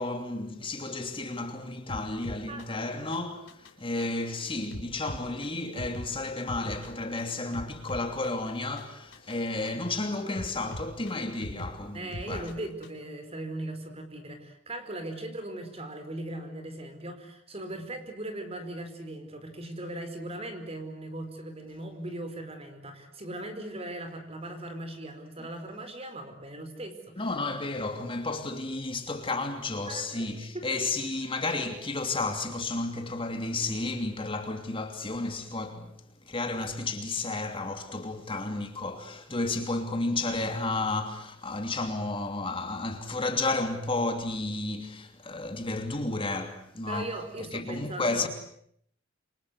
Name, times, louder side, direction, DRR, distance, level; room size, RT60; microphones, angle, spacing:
voice 1, 0.0-12.5 27.2-35.9 36.3-47.1 47.5-48.3, left 2 dB, 30° left, 2.9 m, -32 dB
sound 1, 1.9-13.1, equal, 80° left, 3.9 m, -44 dB
voice 2, 11.9-27.3 29.9-30.6 46.9-48.3, right 1 dB, 30° right, 4.8 m, -39 dB
28.5 x 25.0 x 8.1 m
head